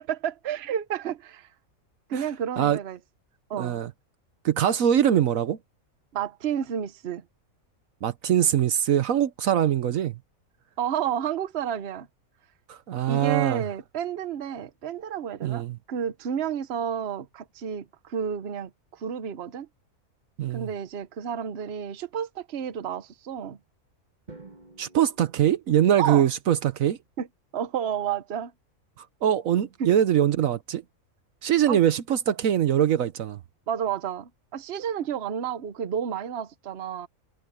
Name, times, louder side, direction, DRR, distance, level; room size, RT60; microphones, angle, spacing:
voice 1, 0.0-1.5 2.1-3.0 3.5-3.8 6.1-7.2 10.8-12.1 13.1-19.7 20.5-23.6 26.0-26.3 27.2-27.3 27.5-28.5 29.8-29.9 31.7-31.8 33.7-37.1, right 8 dB, 50° right, 1.1 m, -31 dB
voice 2, 3.6-3.9 4.4-5.6 8.0-10.2 12.7-13.6 15.4-15.8 20.4-20.7 24.8-27.0 29.2-30.8 31.4-33.4, right 10 dB, 75° right, 1.2 m, -23 dB
Drum, 24.3-26.4, right 3 dB, 30° right, 1.7 m, -50 dB
omnidirectional pair, 1.5 m